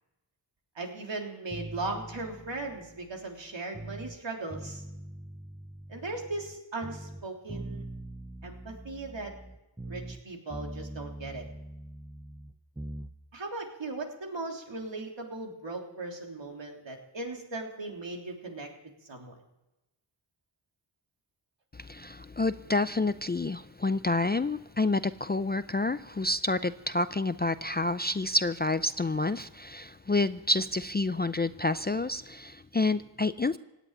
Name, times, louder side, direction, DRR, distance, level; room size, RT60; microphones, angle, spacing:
voice 1, 0.7-4.8 5.9-7.9 8.4-9.3 9.8-11.4 13.3-18.7 19.1-19.4, right 2 dB, 65° right, 1 dB, 3.4 m, -38 dB
sound 1, 1.5-4.2 4.5-6.6 6.8-10.2 10.5-13.1, right 1 dB, 5° right, 0.7 m, -43 dB
voice 2, 21.7-33.6, left 2 dB, 20° left, 13 dB, 0.5 m, -29 dB
17.5 x 8.2 x 9.9 m, 0.97 s
wide cardioid pair, 65°, 48 cm